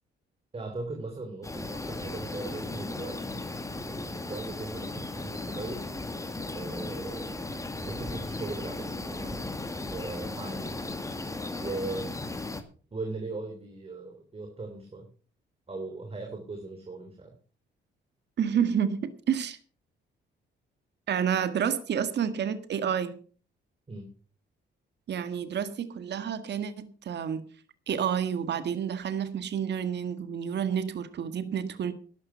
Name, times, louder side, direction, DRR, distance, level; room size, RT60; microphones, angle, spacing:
voice 1, 0.5-3.4 3.8-5.9 6.5-7.4 7.8-9.4 9.9-10.7 11.6-12.1 12.9-15.1 15.7-17.3 23.9-24.1, right 3 dB, 30° right, 3 dB, 3.2 m, -38 dB
sound 1, 1.4-12.6, left 2 dB, 15° left, 2.0 m, -36 dB
voice 2, 18.4-19.6 21.1-23.2 25.1-27.5 27.9-31.9, right 8 dB, 60° right, 11 dB, 1.6 m, -29 dB
12.5 x 11.5 x 5.7 m, 0.40 s
cardioid pair, 90°, 20 cm